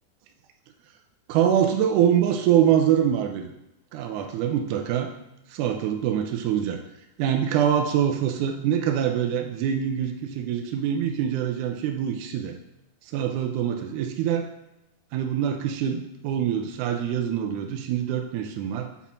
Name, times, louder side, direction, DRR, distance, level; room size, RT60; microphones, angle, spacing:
voice 1, 1.3-3.5 3.9-5.1 5.5-6.8 7.2-12.6 13.0-14.5 15.1-18.9, right 9 dB, 85° right, 4 dB, 1.8 m, -24 dB
6.9 x 4.2 x 4.3 m, 0.89 s
omnidirectional pair, 4.1 m